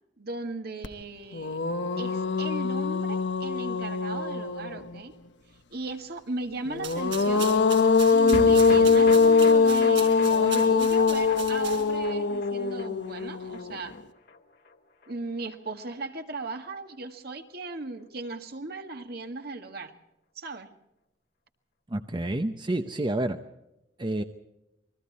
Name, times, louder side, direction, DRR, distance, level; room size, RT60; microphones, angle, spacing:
voice 1, 0.2-1.6 2.0-5.1 5.7-7.5 8.1-14.0 15.1-19.9 20.4-20.7, right 2 dB, 60° right, 6 dB, 1.9 m, -37 dB
sound 1, 0.8-0.9 1.3-5.0 6.7-13.9, left 4 dB, 75° left, 1.1 m, -23 dB
sound 2, 6.7-12.1, right 9 dB, 80° right, 4.5 m, -40 dB
sound 3, 8.3-14.8 15.0-15.1 15.4-15.5, left 2 dB, 60° left, 1.7 m, -39 dB
voice 2, 21.9-23.4 24.0-24.2, right 1 dB, 25° right, 8 dB, 0.8 m, -29 dB
28.5 x 21.5 x 4.2 m, 0.92 s
head